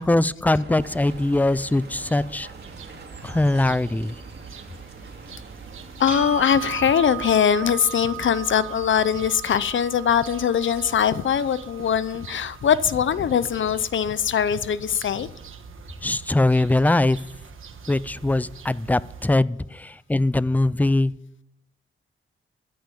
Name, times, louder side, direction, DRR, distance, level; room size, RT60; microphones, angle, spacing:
voice 1, 0.0-2.5 3.2-4.2 16.0-17.2 17.9-21.1, left 2 dB, 10° left, 19 dB, 0.5 m, -21 dB
sound 1, 0.6-7.1, right 3 dB, 55° right, 2.4 m, -43 dB
sound 2, 0.8-19.4, right 6 dB, 80° right, 1.5 m, -44 dB
voice 2, 6.0-15.3, left 8 dB, 70° left, 16 dB, 0.7 m, -22 dB
sound 3, 6.1-14.1, right 12 dB, 40° right, 3.9 m, -38 dB
14.0 x 9.4 x 7.0 m, 0.79 s
cardioid pair, 85°, 21 cm